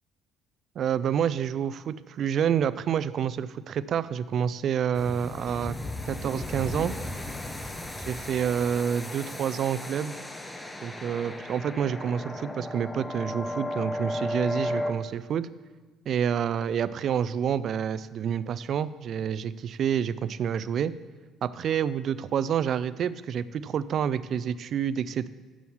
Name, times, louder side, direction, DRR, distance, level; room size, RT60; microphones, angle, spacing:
voice 1, 0.8-5.8 6.1-6.9 8.0-10.2 10.8-15.5 16.1-20.9 21.4-25.3, right 8 dB, 55° right, 16 dB, 0.3 m, -28 dB
sound 1, 4.9-14.9, left 1 dB, 10° left, 0.6 m, -35 dB
7.1 x 6.1 x 7.1 m, 1.3 s
cardioid pair, 120°, 0 cm